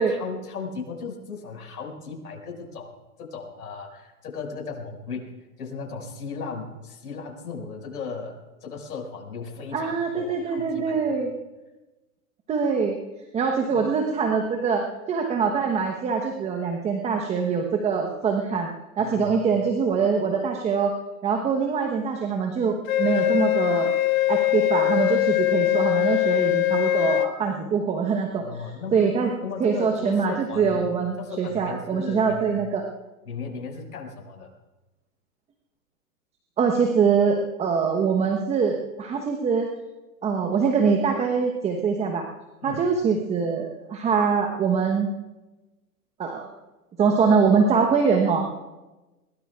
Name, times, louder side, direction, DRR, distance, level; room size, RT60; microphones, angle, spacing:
voice 1, 0.0-5.3 5.6-11.2 13.7-13.8 19.0-19.4 28.4-29.0 29.2-30.8 31.2-32.5 33.3-34.5 42.6-42.8, left 5 dB, 75° left, 1 dB, 5.7 m, -36 dB
voice 2, 9.7-11.3 12.5-12.9 13.3-18.7 19.0-21.0 21.2-23.9 24.3-28.4 28.9-29.3 29.6-32.9 36.6-39.7 40.2-42.3 42.6-45.1 46.2-46.5 47.0-48.5, right 5 dB, 15° right, 3 dB, 1.0 m, -23 dB
Wind instrument woodwind instrument, 22.9-27.3, left 15 dB, 60° left, 2.0 m, -22 dB
22.0 x 21.0 x 2.4 m, 1.1 s
hypercardioid pair, 130°, 47 cm